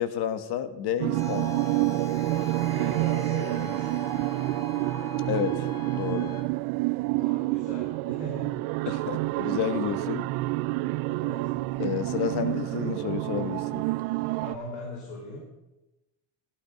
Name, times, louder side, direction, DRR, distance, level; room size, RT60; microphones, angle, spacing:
voice 1, 0.0-1.6 5.3-5.7 5.9-6.3 8.9-10.3 11.8-13.8, left 9 dB, 55° left, 1.5 m, -30 dB
sound 1, 1.0-14.6, right 21 dB, 85° right, 0.6 m, -28 dB
sound 2, 1.1-6.4, left 6 dB, 5° left, 2.7 m, -40 dB
voice 2, 2.7-4.2 7.1-8.6 11.1-11.5 14.4-15.6, left 1 dB, 75° left, 4.3 m, -40 dB
15.5 x 11.5 x 5.2 m
cardioid pair, 120°, 46 cm